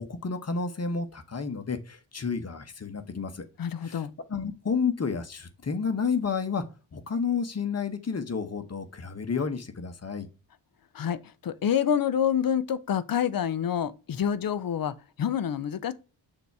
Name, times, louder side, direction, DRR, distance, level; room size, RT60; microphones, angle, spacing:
voice 1, 0.0-3.4 3.8-6.6 6.9-10.3, left 5 dB, 35° left, 1.1 m, -31 dB
voice 2, 3.6-4.1 10.9-15.9, left 8 dB, 50° left, 0.7 m, -27 dB
6.9 x 2.9 x 4.7 m
cardioid pair, 75°, 43 cm